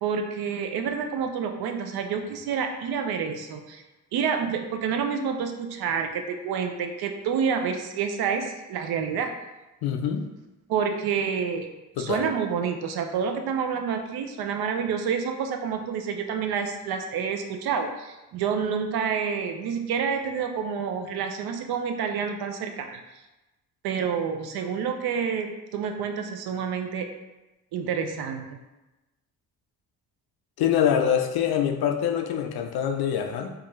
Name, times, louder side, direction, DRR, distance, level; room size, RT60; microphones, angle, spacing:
voice 1, 0.0-3.8 4.1-9.3 10.7-11.7 12.0-23.0 23.8-27.1 27.7-28.6, right 6 dB, 65° right, 5 dB, 0.5 m, -28 dB
voice 2, 9.8-10.3 12.0-12.3 30.6-33.5, left 9 dB, 65° left, 5 dB, 0.5 m, -25 dB
2.4 x 2.3 x 3.0 m, 1.0 s
supercardioid pair, 65°, 41 cm